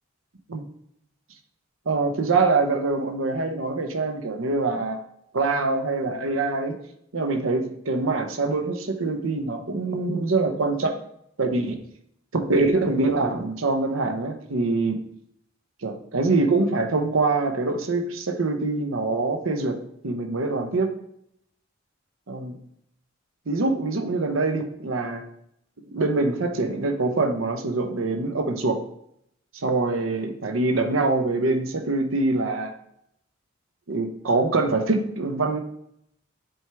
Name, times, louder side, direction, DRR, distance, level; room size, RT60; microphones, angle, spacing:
voice 1, 1.9-5.0 5.3-6.7 7.1-11.0 11.4-11.8 12.3-15.0 15.8-19.8 20.0-20.9 22.3-22.5 23.5-25.2 25.9-28.8 29.5-32.7 33.9-35.6, right 3 dB, 80° right, 5 dB, 0.8 m, -24 dB
7.8 x 4.5 x 3.4 m, 0.73 s
head